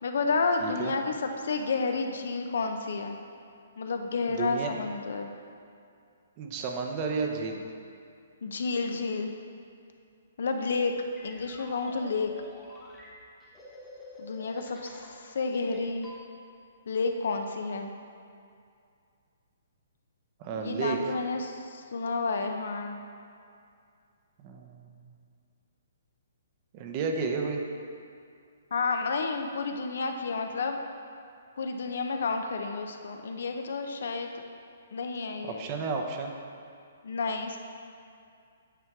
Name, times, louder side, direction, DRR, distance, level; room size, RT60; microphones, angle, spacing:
voice 1, 0.0-3.2 3.8-5.3 8.4-9.3 10.4-10.9 11.2-12.3 14.2-16.1 16.9-17.9 20.5-23.0 28.7-30.8 31.6-34.4 34.9-35.7 37.0-37.6, left 4 dB, 70° left, 5 dB, 0.6 m, -30 dB
voice 2, 0.6-0.9 4.4-4.8 6.4-7.6 20.4-21.0 24.4-24.9 26.7-27.6 35.4-36.3, right 5 dB, 30° right, 3 dB, 0.7 m, -32 dB
sound 1, 10.8-15.2 15.5-16.2, left 1 dB, 5° left, 1.1 m, -48 dB
9.0 x 4.5 x 3.6 m, 2.4 s
hypercardioid pair, 150°, 0 cm